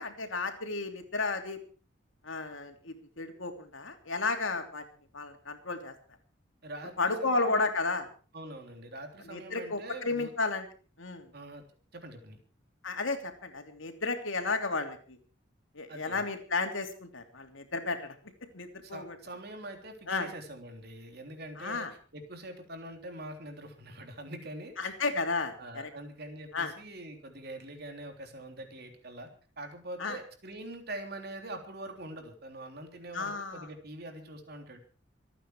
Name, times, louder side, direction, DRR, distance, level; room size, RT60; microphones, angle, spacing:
voice 1, 0.0-1.6 2.2-4.8 5.1-5.9 7.0-8.1 9.3-10.7 11.0-11.3 12.8-15.2 15.7-18.1 18.5-19.1 20.1-20.3 21.6-21.9 24.8-25.9 26.5-26.7 30.0-30.2 33.1-33.7, left 3 dB, 90° left, 5 dB, 3.0 m, -33 dB
voice 2, 6.6-7.6 8.3-10.3 11.3-11.7 11.9-12.4 15.9-16.3 18.8-21.9 22.1-25.0 25.6-29.3 29.6-34.8, right 1 dB, 55° right, 5 dB, 3.5 m, -44 dB
26.0 x 9.3 x 4.8 m, 0.39 s
head